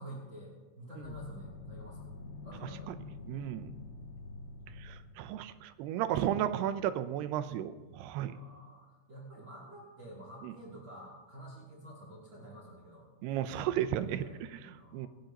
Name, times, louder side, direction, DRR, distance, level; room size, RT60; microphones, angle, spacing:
voice 1, 0.0-2.1 2.4-3.0 8.3-13.1 14.0-14.4 14.8-15.1, right 1 dB, 30° right, -4 dB, 3.2 m, -49 dB
sound 1, 1.0-5.6, left 3 dB, 75° left, 1.3 m, -47 dB
voice 2, 3.3-3.7 4.8-8.3 10.4-10.5 13.2-14.2 14.9-15.1, right 11 dB, 85° right, 11 dB, 2.7 m, -33 dB
28.5 x 10.5 x 3.0 m, 1.3 s
omnidirectional pair, 4.7 m